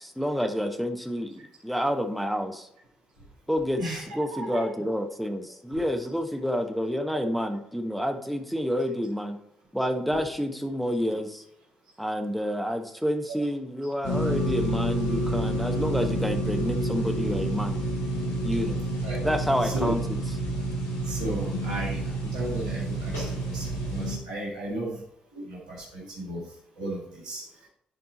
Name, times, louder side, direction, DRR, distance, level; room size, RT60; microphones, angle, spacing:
voice 1, 0.0-2.7 3.5-9.4 9.7-11.4 12.0-17.8 18.4-18.8 19.2-20.2, equal, ahead, 5 dB, 1.1 m, -29 dB
voice 2, 4.3-4.7 5.7-5.8 7.1-7.2 10.1-10.2 19.0-19.2 19.6-19.9 21.1-22.0 22.3-23.2 23.5-25.0 25.4-26.4 26.8-27.4, right 1 dB, 90° right, -5 dB, 1.8 m, -34 dB
sound 1, 14.0-24.2, right 1 dB, 75° left, 2.3 m, -29 dB
10.5 x 4.2 x 4.2 m, 0.73 s
hypercardioid pair, 45°, 4 cm